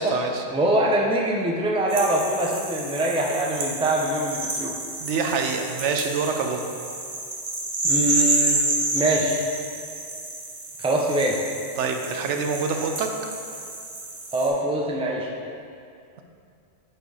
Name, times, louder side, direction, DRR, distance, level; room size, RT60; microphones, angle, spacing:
voice 1, 0.0-0.4 5.0-6.6 11.8-13.1, right 5 dB, 80° right, 4 dB, 0.9 m, -26 dB
voice 2, 0.5-4.8 7.8-8.6 8.9-9.4 10.8-11.4 14.3-15.3, right 1 dB, 5° right, -1 dB, 0.5 m, -23 dB
sound 1, 1.9-14.5, right 2 dB, 50° right, 1.2 m, -29 dB
7.8 x 4.4 x 4.8 m, 2.4 s
omnidirectional pair, 1.2 m